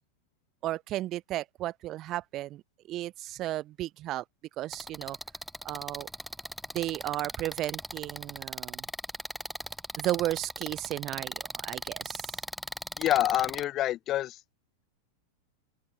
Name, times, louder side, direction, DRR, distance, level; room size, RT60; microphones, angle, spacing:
voice 1, 0.6-2.6 2.9-4.2 4.6-5.2 5.6-6.1 6.7-8.8 10.0-12.3, right 15 dB, 35° right, 1.1 m, -34 dB
sound 1, 4.7-13.6, equal, ahead, 1.4 m, -38 dB
voice 2, 13.0-14.3, left 13 dB, 35° left, 0.8 m, -27 dB
open air
figure-of-eight pair, 90°, 0 cm